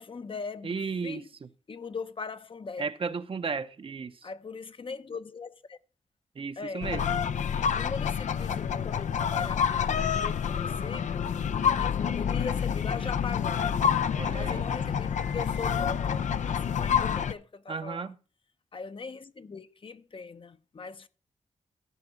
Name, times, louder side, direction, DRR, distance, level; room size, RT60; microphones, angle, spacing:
voice 1, 0.0-1.3 1.7-2.9 4.2-5.8 6.6-6.9 7.7-11.4 11.6-13.7 14.3-18.1 18.7-21.1, left 5 dB, 45° left, 0.7 m, -40 dB
voice 2, 0.6-1.5 2.8-4.3 6.3-7.0 14.2-14.6 17.7-18.2, right 5 dB, 50° right, 0.8 m, -34 dB
sound 1, 6.8-17.3, left 7 dB, 80° left, 0.6 m, -28 dB
14.0 x 5.0 x 6.9 m
cardioid pair, 75°, 12 cm